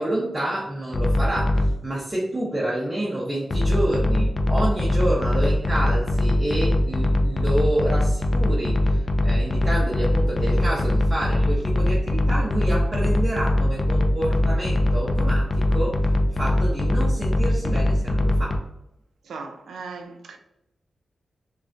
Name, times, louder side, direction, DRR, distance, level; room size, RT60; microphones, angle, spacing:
voice 1, 0.0-16.0 16.3-18.6, right 1 dB, 25° right, 0.6 m, -28 dB
sound 1, 0.9-1.8 3.5-18.6, left 1 dB, 45° left, 0.3 m, -21 dB
voice 2, 19.3-20.4, right 4 dB, 85° right, 0.3 m, -37 dB
2.4 x 2.1 x 2.4 m
cardioid pair, 65°, 0 cm